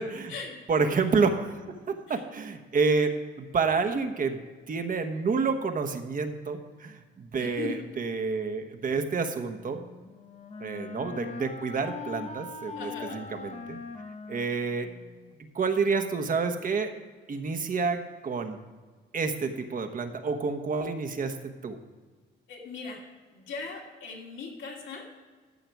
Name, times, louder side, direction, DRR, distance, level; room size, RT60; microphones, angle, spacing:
voice 1, 0.0-0.3 0.7-1.5 1.9-4.4 4.7-9.8 10.6-13.8 14.3-14.9 15.5-16.9 17.3-18.6 19.1-21.8, right 4 dB, 45° right, 7 dB, 1.2 m, -29 dB
voice 2, 7.3-7.8 12.7-13.2 22.5-23.0 23.3-25.0, left 4 dB, 70° left, -1 dB, 2.8 m, -39 dB
Wind instrument woodwind instrument, 9.6-15.4, left 4 dB, 35° left, 1.0 m, -42 dB
13.5 x 6.7 x 4.7 m, 1.4 s
cardioid pair, 90°, 20 cm